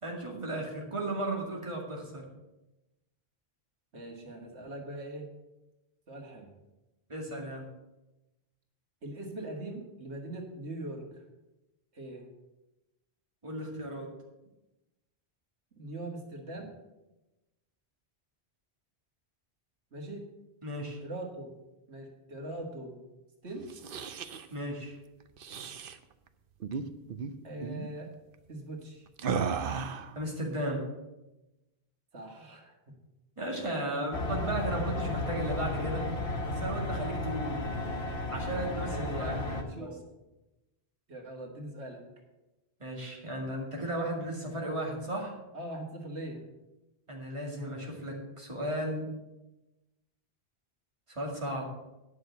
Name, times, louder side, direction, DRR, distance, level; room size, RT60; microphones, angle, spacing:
voice 1, 0.0-2.2 7.1-7.7 13.4-14.1 20.6-21.0 24.5-25.0 30.1-30.9 33.4-36.1 36.4-37.6 38.3-39.9 42.8-45.3 47.1-49.1 51.1-51.7, right 1 dB, 30° right, -1 dB, 2.4 m, -35 dB
voice 2, 3.9-5.3 6.1-6.5 9.0-11.2 11.9-12.3 15.7-16.8 19.9-20.3 21.0-21.5 21.9-23.0 23.4-23.7 27.4-28.1 28.5-29.1 32.1-33.0 36.2-36.7 38.4-40.0 41.1-42.0 45.5-46.5, right 1 dB, 90° right, 1 dB, 2.0 m, -41 dB
sound 1, 23.6-24.5 25.4-26.0 26.6-26.8 27.1-27.3 27.6-27.9 29.2-30.1, right 6 dB, 60° right, 0.9 m, -34 dB
sound 2, 34.1-39.6, left 2 dB, 90° left, 1.6 m, -33 dB
9.7 x 6.3 x 8.1 m, 1.0 s
omnidirectional pair, 1.1 m